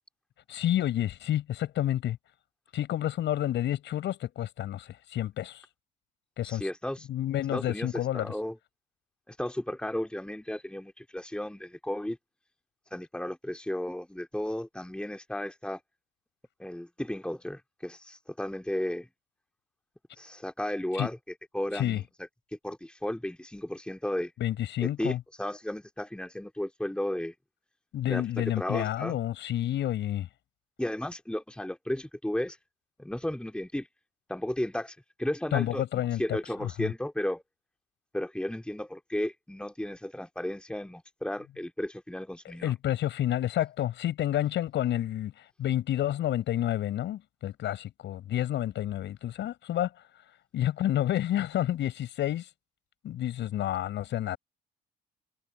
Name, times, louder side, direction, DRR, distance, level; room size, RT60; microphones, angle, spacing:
voice 1, 0.5-2.2 2.7-5.6 6.4-6.7 7.1-8.3 21.0-21.1 21.7-22.0 24.4-25.2 27.9-30.3 35.5-36.9 42.6-49.9 50.5-52.5 53.0-54.4, left 12 dB, 70° left, 6.7 m, -29 dB
voice 2, 6.4-7.1 7.5-8.6 9.3-12.2 12.9-15.8 16.6-19.1 20.2-21.2 21.5-22.1 22.6-24.3 24.8-27.3 28.1-29.2 30.8-32.6 33.0-33.9 34.3-37.4 38.1-42.7, left 1 dB, 5° left, 2.5 m, -34 dB
hypercardioid pair, 55°, 19 cm